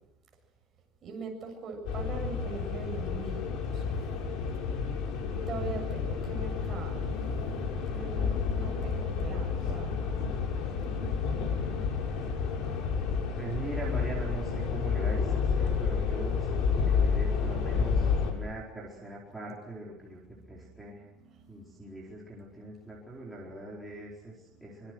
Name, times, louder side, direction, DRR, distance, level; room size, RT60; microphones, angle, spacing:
voice 1, 1.0-3.8 5.3-7.1 7.9-9.9 19.4-19.5 20.7-21.7 24.5-24.8, right 3 dB, 25° right, 1 dB, 7.4 m, -42 dB
sound 1, 1.9-18.3, left 5 dB, 55° left, 6.0 m, -30 dB
voice 2, 13.4-20.2 20.5-21.1 21.5-24.9, right 2 dB, ahead, -5 dB, 4.5 m, -41 dB
25.0 x 24.5 x 7.9 m, 0.83 s
cardioid pair, 180°, 0 cm